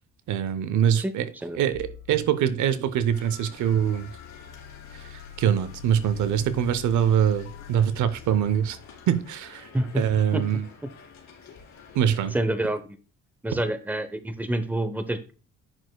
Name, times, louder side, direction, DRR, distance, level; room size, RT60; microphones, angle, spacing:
voice 1, 0.3-1.2 1.6-4.1 5.0-8.8 9.1-9.7 10.0-10.6 11.9-12.3, right 9 dB, 75° right, 0.7 m, -24 dB
voice 2, 1.4-1.7 9.7-10.0 10.3-10.9 12.3-13.0 13.4-15.3, right 1 dB, 5° right, 0.7 m, -28 dB
sound 1, 1.7-10.4, left 10 dB, 85° left, 1.9 m, -46 dB
sound 2, 3.1-12.4, left 6 dB, 65° left, 2.3 m, -49 dB
8.8 x 6.3 x 2.3 m
cardioid pair, 90°, 30 cm